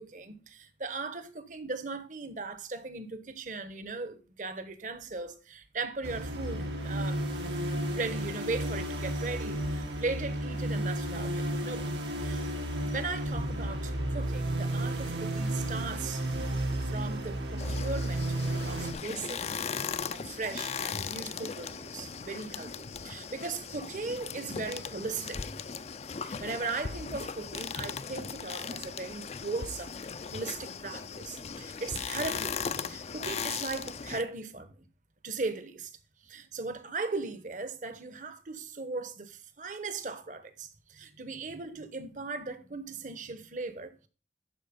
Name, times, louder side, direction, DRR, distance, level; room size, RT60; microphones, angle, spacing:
voice 1, 0.0-7.2 7.9-11.9 12.2-16.2 16.9-18.3 18.6-25.4 26.2-30.0 30.3-34.8 35.2-35.9 36.2-44.1, right 3 dB, 45° right, 1.0 m, -38 dB
sound 1, 6.0-18.9, right 1 dB, 90° right, 2.2 m, -32 dB
sound 2, 17.6-34.2, left 6 dB, 35° left, 0.4 m, -38 dB
11.5 x 4.7 x 5.1 m
head